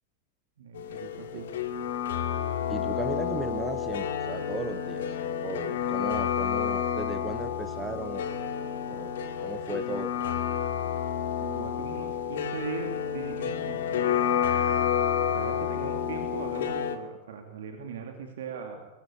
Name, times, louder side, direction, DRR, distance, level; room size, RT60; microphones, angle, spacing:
voice 1, 0.6-1.5 11.4-14.1 15.3-18.9, right 6 dB, 60° right, 4 dB, 2.8 m, -40 dB
sound 1, 0.7-17.0, left 8 dB, 60° left, 2.0 m, -30 dB
voice 2, 2.7-5.1 5.4-8.5 8.9-10.1, right 4 dB, 15° right, 10 dB, 1.1 m, -37 dB
24.0 x 21.5 x 8.4 m, 1.0 s
figure-of-eight pair, 90°, 0 cm